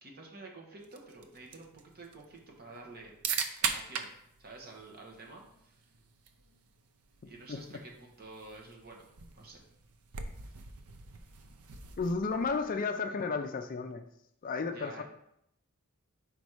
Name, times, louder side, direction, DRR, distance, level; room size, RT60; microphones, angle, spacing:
voice 1, 0.0-3.1 3.6-4.1 4.4-5.8 7.2-9.1 9.4-9.6 10.4-10.6 14.7-15.0, right 2 dB, 45° right, 0 dB, 1.3 m, -50 dB
sound 1, 0.8-12.8, right 6 dB, 70° right, 0.6 m, -41 dB
voice 2, 12.0-14.0 14.4-15.0, left 4 dB, 40° left, 7 dB, 0.4 m, -32 dB
5.2 x 4.1 x 4.8 m, 0.76 s
head